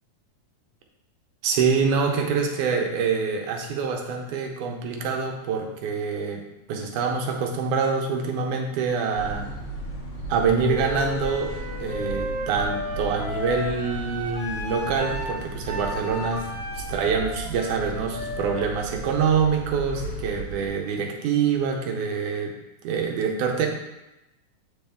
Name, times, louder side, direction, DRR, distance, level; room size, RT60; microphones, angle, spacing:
voice 1, 1.4-6.4 6.7-9.5 10.3-11.5 11.8-16.5 16.7-22.5 22.8-23.7, right 5 dB, 85° right, 3 dB, 2.2 m, -25 dB
sound 1, 9.1-20.7, right 2 dB, 40° left, 2.4 m, -36 dB
Wind instrument woodwind instrument, 10.6-20.4, left 1 dB, 10° left, 0.8 m, -35 dB
7.9 x 5.3 x 3.4 m, 0.93 s
omnidirectional pair, 3.6 m